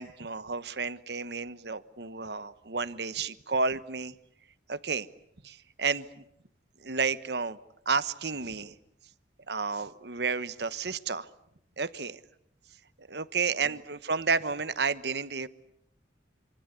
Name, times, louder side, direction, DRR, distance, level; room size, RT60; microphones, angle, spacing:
voice 1, 0.0-4.1 4.7-5.1 5.4-6.2 6.8-7.6 7.8-8.7 9.5-11.3 11.8-12.2 13.0-15.5, right 4 dB, 65° right, 14 dB, 1.2 m, -31 dB
27.5 x 26.0 x 8.2 m, 0.73 s
head